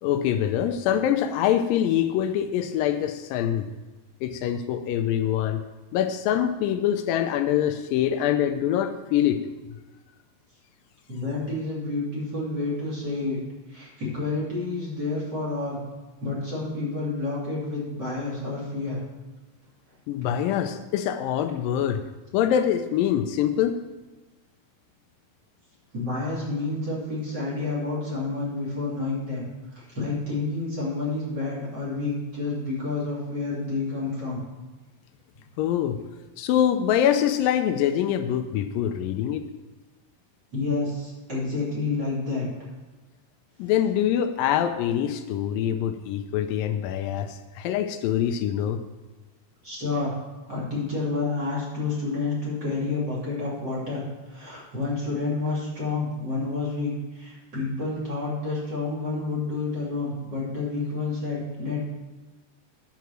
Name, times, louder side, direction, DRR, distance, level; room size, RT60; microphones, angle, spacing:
voice 1, 0.0-3.7 4.2-5.6 5.9-9.4 20.1-22.0 22.3-23.8 35.6-36.0 36.4-39.5 43.6-48.8, left 10 dB, 85° left, 8 dB, 2.3 m, -24 dB
voice 2, 11.1-13.4 13.7-15.8 16.2-19.0 25.9-29.4 29.7-34.4 40.5-42.5 43.7-43.8 49.6-50.1 50.4-61.8, left 3 dB, 30° right, -7 dB, 3.3 m, -29 dB
9.5 x 6.9 x 6.1 m, 1.2 s
omnidirectional pair, 4.0 m